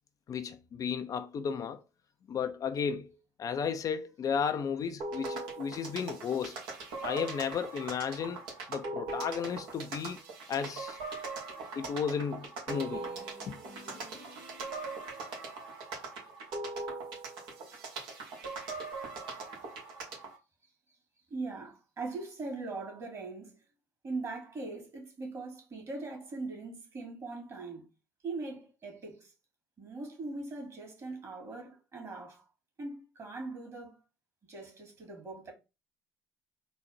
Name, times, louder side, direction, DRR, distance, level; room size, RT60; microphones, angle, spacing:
voice 1, 0.3-1.8 2.3-3.1 3.4-6.6 7.0-8.4 8.7-10.2 10.5-11.0 11.8-13.1 13.5-13.6, left 7 dB, 45° left, 0.5 m, -33 dB
sound 1, 5.0-20.4, right 3 dB, 65° right, 1.5 m, -40 dB
voice 2, 21.3-23.6 24.0-27.9 28.2-29.3 29.8-32.4 32.8-34.0 34.4-35.5, right 3 dB, 35° right, 2.3 m, -41 dB
4.0 x 2.4 x 4.4 m
hypercardioid pair, 65°, 9 cm